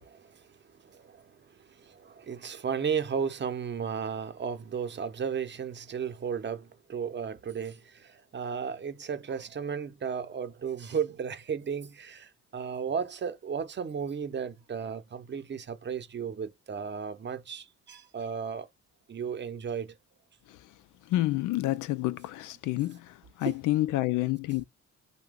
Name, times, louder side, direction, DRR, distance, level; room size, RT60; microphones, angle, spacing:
voice 1, 0.0-18.7 19.1-20.0 23.4-23.5, right 7 dB, 35° right, 0.7 m, -34 dB
voice 2, 21.1-24.6, left 16 dB, 85° left, 0.5 m, -29 dB
2.8 x 2.2 x 3.5 m
cardioid pair, 90°, 30 cm